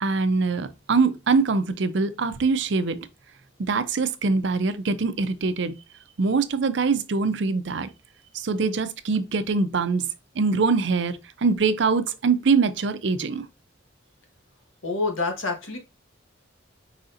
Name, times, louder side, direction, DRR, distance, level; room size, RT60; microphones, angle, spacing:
voice 1, 0.0-3.0 3.6-5.7 6.2-7.9 8.3-10.1 10.4-13.4, right 4 dB, 65° right, 0.5 m, -23 dB
voice 2, 14.8-15.8, left 3 dB, 85° left, 1.4 m, -27 dB
4.9 x 4.1 x 2.5 m
head